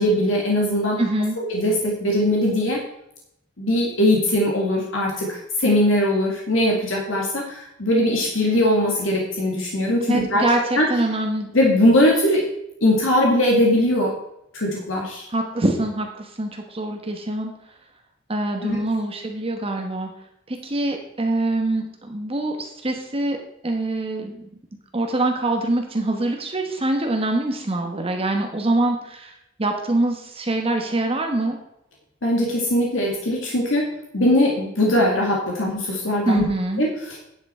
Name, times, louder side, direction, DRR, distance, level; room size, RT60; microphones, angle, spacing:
voice 1, 0.0-1.0 1.4-2.8 3.6-10.4 10.7-10.9 11.5-12.4 12.8-14.1 14.5-15.3 18.6-18.8 32.2-36.5 36.8-37.2, left 1 dB, 75° left, -1 dB, 2.1 m, -20 dB
voice 2, 1.0-1.4 10.1-11.5 15.3-17.5 18.3-20.1 20.5-23.4 23.6-24.5 24.9-31.6 36.3-36.8, right 2 dB, 30° right, 3 dB, 1.1 m, -24 dB
10.5 x 7.9 x 4.4 m, 0.80 s
head